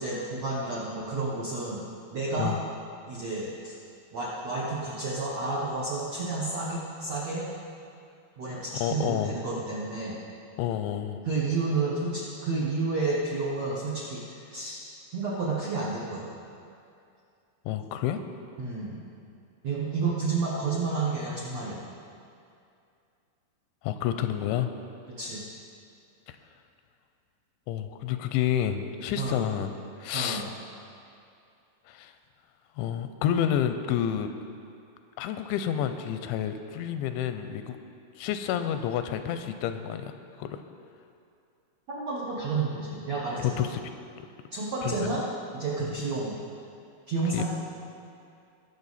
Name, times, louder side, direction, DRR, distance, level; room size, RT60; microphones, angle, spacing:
voice 1, 0.0-1.8 2.1-2.5 3.1-3.7 4.1-7.4 8.4-10.1 11.2-14.8 15.1-16.3 18.6-19.0 19.6-21.8 25.2-25.4 29.2-29.5 30.1-30.5 41.9-43.7 44.5-45.2 45.5-46.3 47.1-47.4, right 3 dB, 75° right, -6 dB, 1.5 m, -30 dB
voice 2, 8.7-9.3 10.6-11.2 17.7-18.2 23.8-24.7 26.3-26.4 27.7-29.7 30.0-30.5 31.9-32.1 32.8-34.3 35.2-37.8 38.2-40.1 40.4-40.6 43.4-43.8 44.8-45.1 45.8-46.0 47.3-47.4, left 10 dB, 85° left, 9 dB, 2.9 m, -29 dB
20.5 x 7.0 x 4.1 m, 2.5 s
omnidirectional pair, 5.3 m